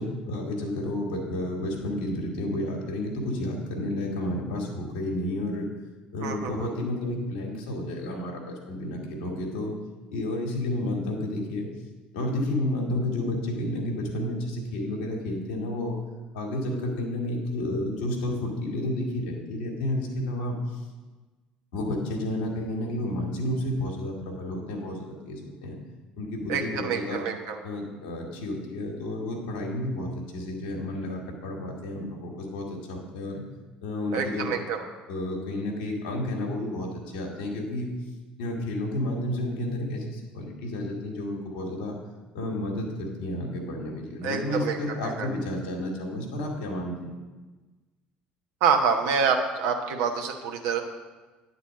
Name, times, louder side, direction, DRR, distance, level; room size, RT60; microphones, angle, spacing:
voice 1, 0.0-5.7 6.1-9.7 10.1-11.7 12.1-16.0 16.3-20.8 21.7-25.8 26.2-27.2 27.6-33.4 33.8-34.5 35.1-37.9 38.4-42.0 42.3-47.2, left 1 dB, 75° left, 0 dB, 1.6 m, -31 dB
voice 2, 6.2-6.7 26.5-27.6 34.1-34.8 44.2-44.8 45.0-45.3 48.6-50.8, right 6 dB, 65° right, 3 dB, 1.0 m, -26 dB
9.7 x 4.1 x 7.2 m, 1.3 s
figure-of-eight pair, 60°, 5 cm